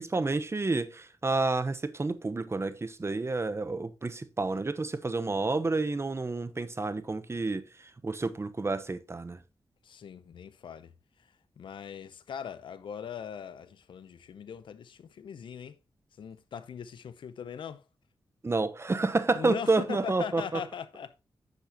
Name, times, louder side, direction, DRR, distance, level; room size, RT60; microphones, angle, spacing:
voice 1, 0.0-9.4 18.4-20.6, right 3 dB, 30° right, 1.0 m, -30 dB
voice 2, 9.8-10.9 11.6-15.8 16.2-17.8 19.3-21.1, left 7 dB, 80° left, 0.7 m, -40 dB
9.8 x 6.6 x 2.9 m
cardioid pair, 55°, 8 cm